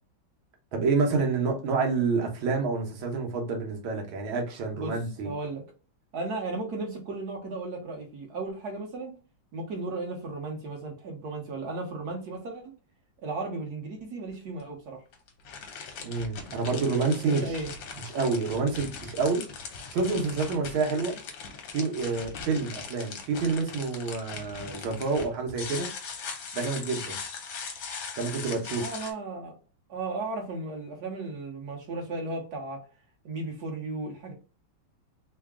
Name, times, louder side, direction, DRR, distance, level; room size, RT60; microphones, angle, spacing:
voice 1, 0.7-5.3 16.0-17.4 18.1-19.4 19.9-21.2 21.7-25.9 26.5-27.2 28.2-28.9, right 4 dB, 90° right, 1.7 m, -28 dB
voice 2, 5.2-5.6 6.1-9.1 9.5-12.7 13.2-15.0 17.2-17.7 28.8-29.5 29.9-32.8 33.2-34.3, right 3 dB, 55° right, 1.5 m, -35 dB
sound 1, 14.3-14.4 15.1-29.1, left 5 dB, 70° left, 1.5 m, -40 dB
3.8 x 2.2 x 3.5 m
omnidirectional pair, 2.2 m